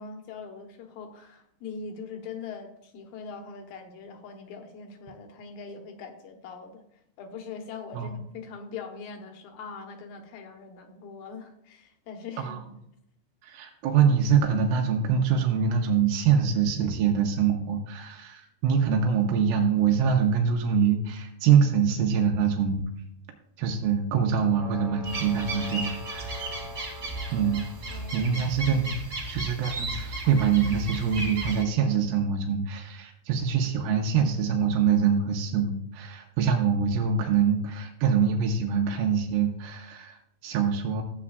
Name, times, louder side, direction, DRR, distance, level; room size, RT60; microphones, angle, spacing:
voice 1, 0.0-6.8 7.2-12.6 27.9-28.3, left 5 dB, 75° left, 4 dB, 2.7 m, -41 dB
voice 2, 13.4-22.9 23.6-26.6 27.3-28.9 29.3-41.0, right 6 dB, 85° right, 2 dB, 2.7 m, -24 dB
sound 1, 24.6-28.6, left 3 dB, 10° left, 1.5 m, -44 dB
sound 2, 25.0-31.6, right 2 dB, 30° right, 1.6 m, -35 dB
13.0 x 8.5 x 2.3 m, 0.75 s
omnidirectional pair, 4.3 m